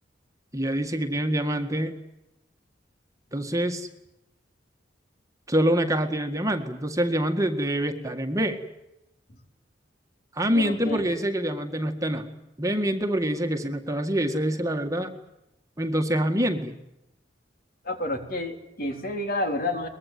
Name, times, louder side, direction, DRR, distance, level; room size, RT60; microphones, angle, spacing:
voice 1, 0.5-1.9 3.3-3.9 5.5-8.6 10.3-12.3 12.6-15.1 15.8-16.8, right 1 dB, 20° right, 4 dB, 1.8 m, -25 dB
voice 2, 10.5-11.0 17.8-19.9, left 1 dB, 50° left, 5 dB, 3.9 m, -29 dB
23.5 x 21.0 x 9.5 m, 0.89 s
head